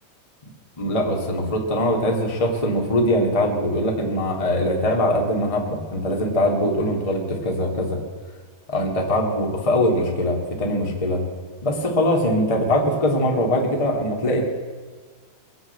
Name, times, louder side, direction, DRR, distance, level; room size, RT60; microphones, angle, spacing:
voice 1, 0.8-8.0 8.7-11.2 11.6-14.4, left 1 dB, 30° left, 0 dB, 0.6 m, -22 dB
22.5 x 7.7 x 8.1 m, 1.5 s
omnidirectional pair, 4.7 m